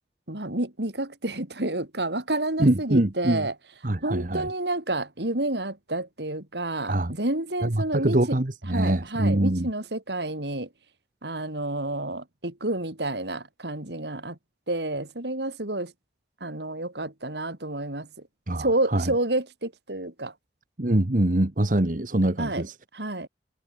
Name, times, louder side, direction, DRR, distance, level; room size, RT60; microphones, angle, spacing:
voice 1, 0.3-3.5 4.0-8.4 8.6-10.7 11.2-14.4 14.7-15.9 16.4-18.1 18.6-20.3 22.4-22.6 22.9-23.3, right 2 dB, 75° right, 4.1 m, -29 dB
voice 2, 2.6-3.5 3.8-4.5 6.9-7.1 7.6-9.7 18.5-19.0 20.8-22.7, right 1 dB, 50° right, 1.3 m, -24 dB
head